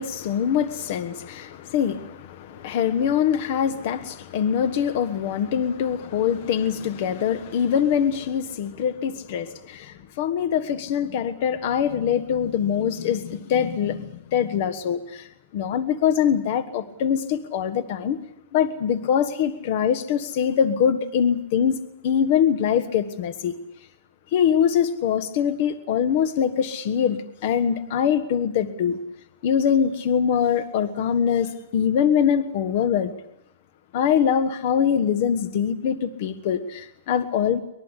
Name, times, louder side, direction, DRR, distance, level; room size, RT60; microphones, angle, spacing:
voice 1, 0.0-15.3 15.5-18.2 18.5-23.5 24.3-29.0 29.4-33.1 33.9-37.6, left 8 dB, 50° left, 10 dB, 1.3 m, -23 dB
24.0 x 21.0 x 8.2 m, 0.83 s
supercardioid pair, 155°, 0 cm